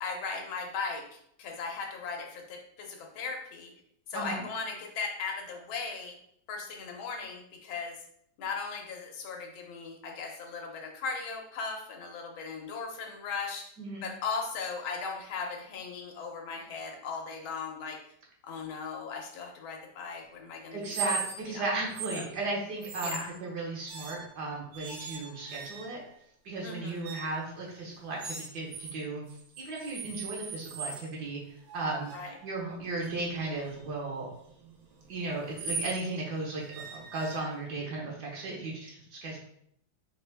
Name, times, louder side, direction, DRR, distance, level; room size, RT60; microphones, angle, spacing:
voice 1, 0.0-3.7 4.1-6.1 6.5-8.0 8.4-13.7 14.0-18.0 18.4-21.2 21.5-21.7 22.1-22.2 23.0-23.3 26.6-27.1 32.1-32.3, left 4 dB, 80° left, 1 dB, 1.6 m, -38 dB
voice 2, 4.1-4.4 13.8-14.1 20.7-26.0 26.4-29.2 29.6-31.4 31.7-32.1 32.4-34.3 35.1-39.4, right 2 dB, 60° right, -2 dB, 1.5 m, -35 dB
sound 1, 20.8-21.6 21.9-22.3 22.8-23.3 23.9-24.4 24.7-26.1 27.0-27.4 28.2-28.9 29.3-31.1 31.7-36.0 36.7-37.8, right 5 dB, 75° right, 1.5 m, -40 dB
4.5 x 3.2 x 3.4 m, 0.71 s
omnidirectional pair, 2.2 m